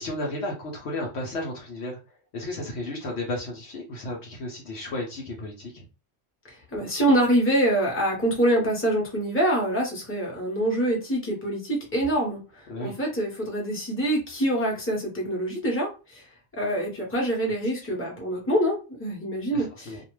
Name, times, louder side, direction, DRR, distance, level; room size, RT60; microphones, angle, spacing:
voice 1, 0.0-2.0 2.3-5.9 12.7-12.9 19.5-20.0, left 1 dB, 65° left, 0 dB, 0.9 m, -33 dB
voice 2, 6.5-16.2 16.5-20.0, right 1 dB, 10° left, -2 dB, 0.9 m, -25 dB
2.5 x 2.2 x 3.1 m, 0.32 s
omnidirectional pair, 1.3 m